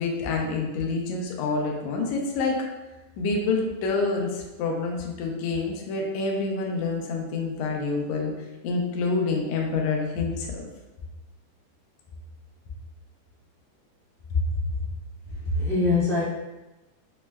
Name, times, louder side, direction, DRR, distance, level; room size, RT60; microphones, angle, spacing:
voice 1, 0.0-2.6 3.2-8.3 8.6-10.6 14.3-14.4, left 4 dB, 80° left, 0 dB, 1.6 m, -27 dB
voice 2, 15.3-16.2, left 3 dB, 55° left, -13 dB, 0.6 m, -23 dB
6.1 x 2.1 x 2.3 m, 1.0 s
omnidirectional pair, 3.7 m